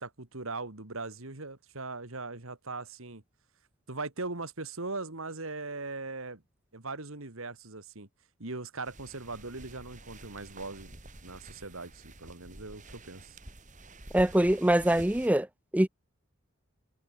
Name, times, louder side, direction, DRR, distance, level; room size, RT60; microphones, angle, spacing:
voice 1, 0.0-3.2 3.9-6.4 6.7-8.1 8.4-10.9 11.2-13.4, right 3 dB, 70° right, 2.3 m, -40 dB
sound 1, 8.8-15.3, right 2 dB, 35° right, 4.5 m, -49 dB
voice 2, 14.1-15.5 15.7-15.9, right 1 dB, 5° right, 0.5 m, -23 dB
head